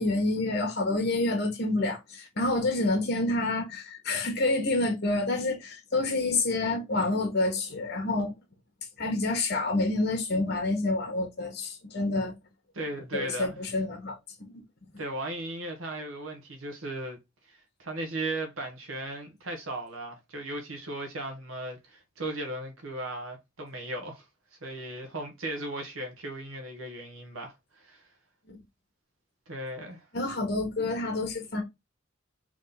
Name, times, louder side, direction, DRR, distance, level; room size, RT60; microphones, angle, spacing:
voice 1, 0.0-8.3 9.0-12.3 13.1-14.6 28.5-28.6 30.1-31.6, left 2 dB, 55° left, 1.2 m, -28 dB
voice 2, 12.7-13.6 15.0-17.2 17.5-24.2 24.6-28.1 29.5-30.1, right 1 dB, 90° right, 1.1 m, -37 dB
3.6 x 3.1 x 4.0 m
head